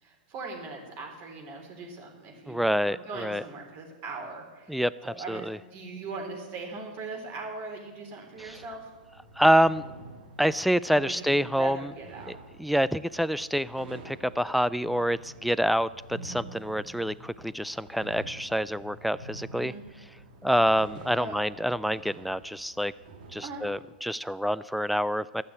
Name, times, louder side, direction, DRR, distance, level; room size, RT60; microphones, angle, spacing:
voice 1, 0.0-8.9 10.9-12.3 19.5-19.8 21.1-21.4 23.4-23.7, right 3 dB, 45° right, 1 dB, 3.5 m, -40 dB
voice 2, 2.5-3.4 4.7-5.6 8.4-8.6 9.4-9.8 10.4-11.9 12.3-19.7 20.4-22.9 23.3-25.4, equal, ahead, 17 dB, 0.3 m, -27 dB
sound 1, 8.3-23.7, right 2 dB, 60° right, 2.3 m, -48 dB
13.0 x 6.8 x 8.4 m, 1.3 s
hypercardioid pair, 115°, 5 cm